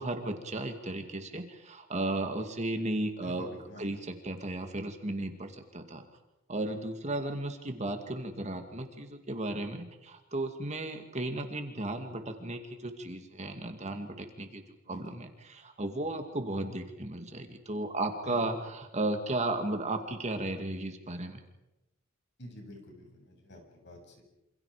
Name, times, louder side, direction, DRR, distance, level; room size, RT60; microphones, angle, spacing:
voice 1, 0.0-3.5 3.8-6.0 6.5-21.4, right 2 dB, 35° right, 5 dB, 2.5 m, -35 dB
voice 2, 3.2-4.0 14.9-15.2 18.2-18.4 22.4-24.2, left 1 dB, 55° left, 2 dB, 7.5 m, -48 dB
27.5 x 27.5 x 5.2 m, 0.93 s
head